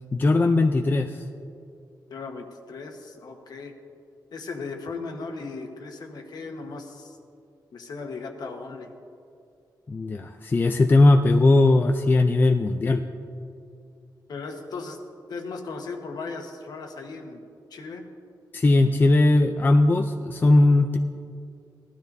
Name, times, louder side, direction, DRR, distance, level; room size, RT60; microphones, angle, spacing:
voice 1, 0.1-1.2 9.9-13.0 18.5-21.0, left 2 dB, 25° left, 4 dB, 0.4 m, -19 dB
voice 2, 2.1-3.7 4.3-7.2 7.7-8.9 14.3-15.0 15.3-17.4 17.7-18.0, left 4 dB, 60° left, 4 dB, 1.2 m, -37 dB
18.5 x 12.5 x 2.7 m, 2.5 s
wide cardioid pair, 160°, 8 cm